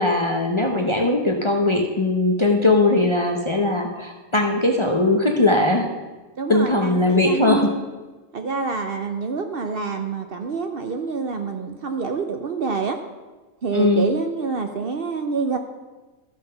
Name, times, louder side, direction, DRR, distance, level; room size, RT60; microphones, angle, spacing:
voice 1, 0.0-5.9 6.5-7.7 13.7-14.1, left 2 dB, 30° left, 2 dB, 0.7 m, -20 dB
voice 2, 6.4-7.8 8.3-13.0 13.6-15.6, right 4 dB, 55° right, 6 dB, 0.8 m, -27 dB
13.0 x 5.8 x 5.5 m, 1.2 s
omnidirectional pair, 1.4 m